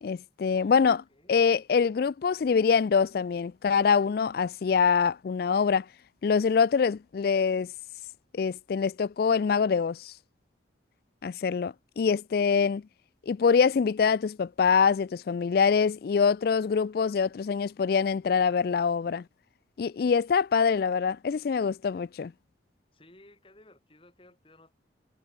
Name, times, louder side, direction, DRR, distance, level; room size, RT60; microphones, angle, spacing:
voice 1, 0.0-1.0 1.3-5.9 6.2-7.7 8.3-10.1 11.2-12.8 13.3-19.2 19.8-22.3, left 6 dB, 55° left, 0.3 m, -24 dB
voice 2, 0.5-1.4 22.9-24.7, left 1 dB, 30° left, 4.3 m, -57 dB
head